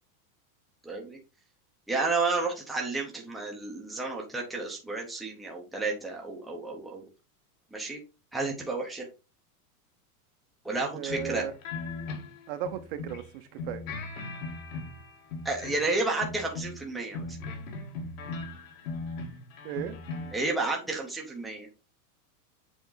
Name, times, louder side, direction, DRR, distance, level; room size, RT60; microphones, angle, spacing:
voice 1, 0.8-1.2 1.9-7.1 7.7-8.0 8.3-9.1 10.6-11.4 15.4-17.4 20.3-21.7, right 3 dB, ahead, -1 dB, 0.6 m, -31 dB
voice 2, 10.9-11.5 12.5-13.8 19.6-20.0, right 9 dB, 35° right, 10 dB, 0.7 m, -35 dB
sound 1, 11.1-13.3 13.6-15.9 16.2-20.5, left 3 dB, 55° left, 1.9 m, -38 dB
7.3 x 3.8 x 3.8 m, 0.30 s
supercardioid pair, 175°, 46 cm